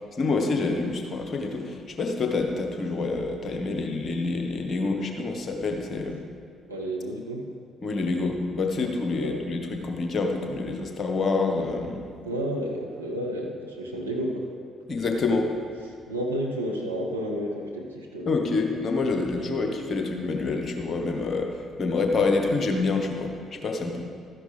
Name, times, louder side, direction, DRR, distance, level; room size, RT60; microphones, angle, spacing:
voice 1, 0.1-6.3 7.8-12.1 14.9-15.5 18.3-24.0, left 3 dB, 40° left, 3 dB, 1.3 m, -27 dB
voice 2, 6.7-7.5 9.2-9.4 12.2-14.5 16.1-18.5 19.4-19.6, equal, 90° right, -1 dB, 0.8 m, -31 dB
13.0 x 10.0 x 3.5 m, 2.2 s
figure-of-eight pair, 45°, 0 cm